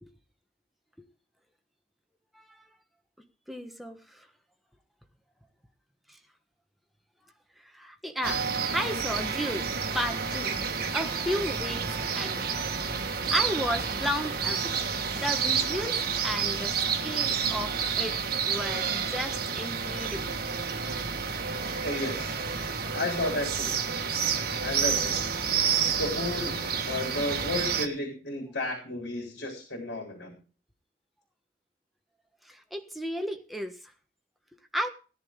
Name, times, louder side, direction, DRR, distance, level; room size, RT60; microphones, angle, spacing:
voice 1, 3.5-4.3 7.6-9.7 9.9-10.6 10.9-11.8 12.1-12.4 13.3-14.7 15.1-16.8 17.0-18.2 18.4-20.4 32.4-33.7 34.7-34.9, equal, ahead, 1.2 m, -33 dB
sound 1, 8.2-27.9, right 6 dB, 60° right, 1.5 m, -30 dB
voice 2, 21.8-22.4 22.9-23.7 24.6-25.1 26.0-30.4, left 2 dB, 85° left, 3.8 m, -32 dB
16.0 x 10.5 x 3.6 m
head